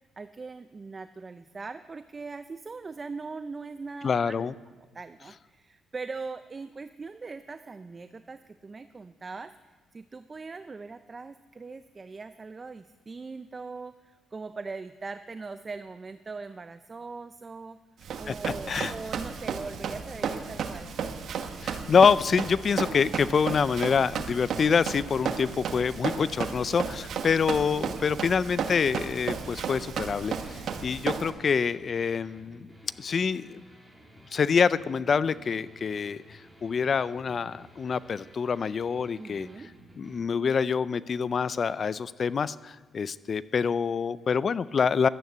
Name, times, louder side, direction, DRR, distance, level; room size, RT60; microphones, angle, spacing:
voice 1, 0.2-4.5 4.9-9.5 9.9-17.8 18.2-20.9 27.8-28.1 39.2-39.7, right 4 dB, 30° right, 11 dB, 0.4 m, -41 dB
voice 2, 4.0-4.5 18.3-18.4 18.7-18.9 21.6-32.7 33.0-33.6 34.3-39.5 40.0-45.1, left 6 dB, 45° left, 18 dB, 0.4 m, -26 dB
Run, 18.0-31.3, right 6 dB, 65° right, 1.2 m, -34 dB
sound 1, 21.0-40.2, equal, ahead, 2.9 m, -54 dB
12.0 x 9.1 x 8.0 m, 1.3 s
cardioid pair, 90°, 0 cm